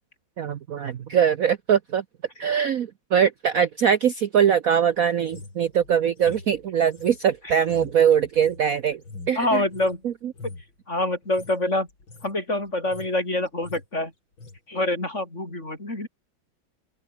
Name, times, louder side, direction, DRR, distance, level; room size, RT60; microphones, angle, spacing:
voice 1, 0.4-2.0 2.4-9.0 9.3-9.6 10.0-10.3, right 8 dB, 55° right, 1.1 m, -22 dB
sound 1, 5.2-10.0 10.3-10.7 11.2-11.6 11.9-12.3 12.7-13.2 13.5-13.9 14.4-14.6, left 3 dB, 85° left, 6.1 m, -43 dB
voice 2, 9.4-10.0 10.9-11.9 12.2-14.1 14.7-16.1, left 1 dB, 35° left, 6.8 m, -26 dB
open air
omnidirectional pair, 2.1 m